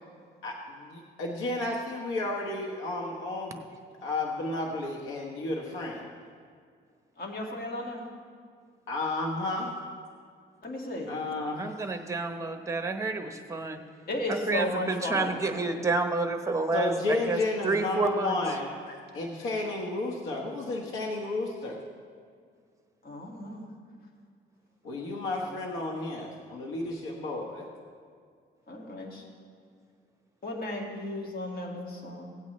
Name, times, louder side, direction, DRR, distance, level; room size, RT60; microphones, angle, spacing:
voice 1, 0.4-3.6 4.0-6.1 8.9-9.7 11.1-11.7 16.7-18.7 19.1-21.8 24.8-27.7, left 2 dB, 85° left, -1 dB, 1.2 m, -32 dB
voice 2, 7.2-8.0 10.6-11.1 14.1-15.4 23.0-23.7 25.5-25.6 28.7-29.2 30.4-32.4, left 1 dB, 50° left, 0 dB, 2.1 m, -34 dB
voice 3, 11.6-13.8 14.3-18.4, right 3 dB, 15° right, 6 dB, 1.0 m, -29 dB
16.5 x 8.6 x 3.2 m, 2.1 s
cardioid pair, 90°, 20 cm